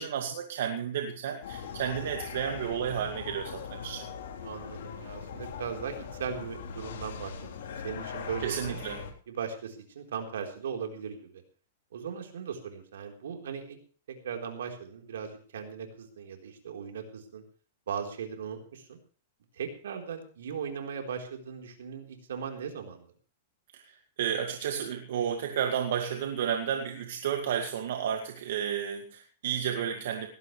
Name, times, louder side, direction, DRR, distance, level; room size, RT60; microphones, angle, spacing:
voice 1, 0.0-4.0 8.4-9.0 23.7-30.3, right 8 dB, 70° right, 4 dB, 2.2 m, -32 dB
sound 1, 1.4-9.1, left 6 dB, 70° left, 3.9 m, -40 dB
voice 2, 4.4-8.8 9.3-11.4 11.9-13.8 14.2-17.4 17.9-19.0 19.5-23.1, right 7 dB, 85° right, 3 dB, 4.1 m, -38 dB
19.0 x 15.5 x 3.3 m, 0.40 s
hypercardioid pair, 145°, 0 cm